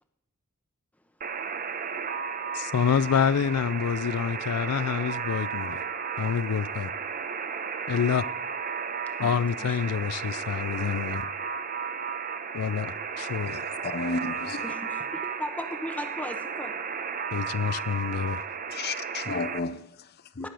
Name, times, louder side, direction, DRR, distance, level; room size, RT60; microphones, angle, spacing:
Alarm, 1.2-19.6, right 6 dB, 40° right, 0.8 m, -34 dB
voice 1, 2.5-5.8 6.2-6.9 7.9-8.2 9.2-11.3 12.5-13.7 17.3-18.4, left 7 dB, 85° left, 0.4 m, -27 dB
voice 2, 9.6-9.9 14.6-16.7 20.4-20.5, left 1 dB, 5° left, 1.0 m, -37 dB
voice 3, 13.5-14.7 18.7-20.5, left 3 dB, 45° left, 0.7 m, -33 dB
18.5 x 6.7 x 7.7 m
head